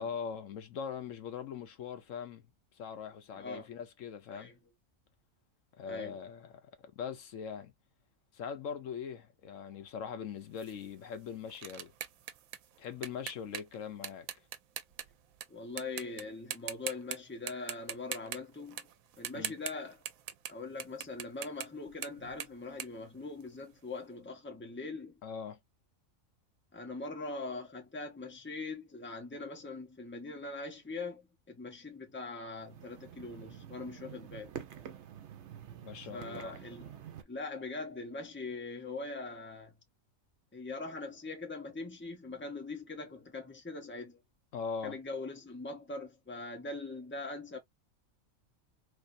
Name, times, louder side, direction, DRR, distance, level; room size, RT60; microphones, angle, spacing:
voice 1, 0.0-2.4 2.8-4.5 5.8-6.7 7.0-7.7 8.3-11.9 12.8-14.3 19.3-19.5 25.2-25.6 35.8-36.6 44.5-45.0, left 6 dB, 75° left, 1.0 m, -41 dB
voice 2, 3.3-3.7 4.3-4.6 5.9-6.2 15.5-18.9 19.2-20.0 20.5-25.2 26.7-34.5 36.1-36.9 37.3-39.7 40.5-44.2 44.8-47.6, left 3 dB, 10° left, 0.9 m, -42 dB
sound 1, 10.6-15.5 15.8-16.2 16.5-17.2 17.5-23.8, right 10 dB, 90° right, 1.0 m, -42 dB
sound 2, 32.6-37.2, right 9 dB, 60° right, 1.0 m, -48 dB
3.3 x 3.3 x 2.5 m
omnidirectional pair, 1.4 m